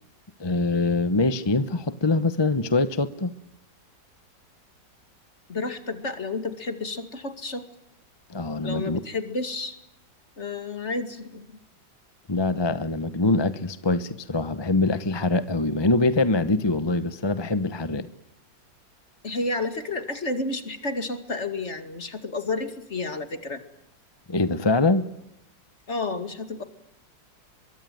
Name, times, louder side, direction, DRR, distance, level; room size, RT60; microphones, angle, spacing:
voice 1, 0.4-3.3 8.3-9.0 12.3-18.1 24.3-25.1, left 3 dB, 20° left, 14 dB, 0.6 m, -24 dB
voice 2, 5.5-7.6 8.6-9.8 10.4-11.6 19.2-23.6 25.9-26.6, left 3 dB, 40° left, 9 dB, 2.6 m, -31 dB
24.0 x 23.0 x 9.3 m, 0.84 s
omnidirectional pair, 1.9 m